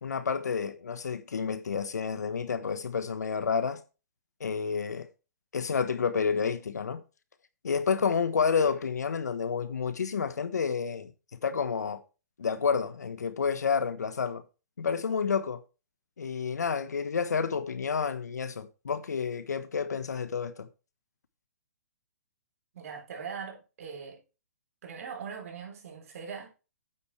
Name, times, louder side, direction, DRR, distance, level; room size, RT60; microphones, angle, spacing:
voice 1, 0.0-3.8 4.4-5.1 5.5-7.0 7.6-11.1 11.4-12.0 12.4-14.4 14.8-15.6 16.2-20.7, left 6 dB, 80° left, 1.2 m, -30 dB
voice 2, 22.7-24.2 24.8-26.5, right 6 dB, 60° right, 3.7 m, -41 dB
9.0 x 8.3 x 3.3 m
hypercardioid pair, 140°, 9 cm